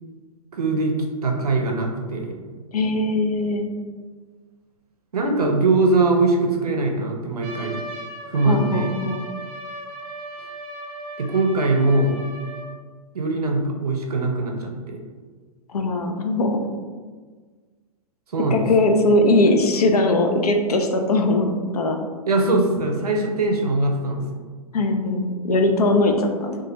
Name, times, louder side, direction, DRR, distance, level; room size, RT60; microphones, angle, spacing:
voice 1, 0.5-1.0 1.2-2.3 5.1-7.8 8.3-8.9 11.2-12.2 13.1-15.0 18.3-18.6 22.3-24.4, right 2 dB, 80° right, 1 dB, 0.5 m, -21 dB
voice 2, 2.7-3.7 8.4-9.2 15.7-16.6 18.5-22.0 24.7-26.6, left 2 dB, 80° left, 4 dB, 0.4 m, -20 dB
Trumpet, 7.4-12.7, right 1 dB, 35° right, 0.5 m, -36 dB
2.2 x 2.0 x 2.7 m, 1.5 s
figure-of-eight pair, 110°, 19 cm